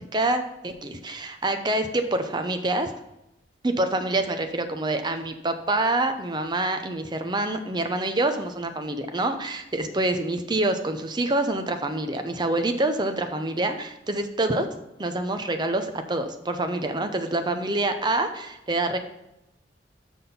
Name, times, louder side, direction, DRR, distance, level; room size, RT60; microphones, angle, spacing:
voice 1, 0.1-2.9 3.6-14.7 15.0-19.0, right 2 dB, 25° right, 7 dB, 0.6 m, -26 dB
6.1 x 5.9 x 5.4 m, 0.88 s
head